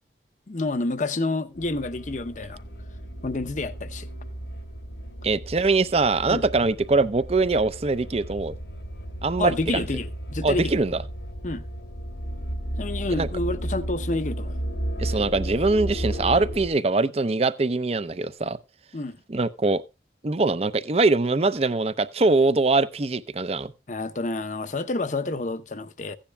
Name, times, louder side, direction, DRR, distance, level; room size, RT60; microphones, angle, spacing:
voice 1, 0.5-2.6 3.2-4.1 6.3-6.4 9.4-10.7 11.4-11.6 12.8-14.6 18.9-19.2 23.9-26.2, left 2 dB, 45° left, 0.7 m, -29 dB
sound 1, 1.5-16.7, right 1 dB, 80° left, 2.1 m, -34 dB
voice 2, 5.2-8.5 9.2-9.8 10.4-11.0 13.2-13.3 15.0-18.6 19.3-19.8 20.2-23.7, right 3 dB, 35° right, 0.5 m, -23 dB
16.0 x 10.0 x 2.2 m
head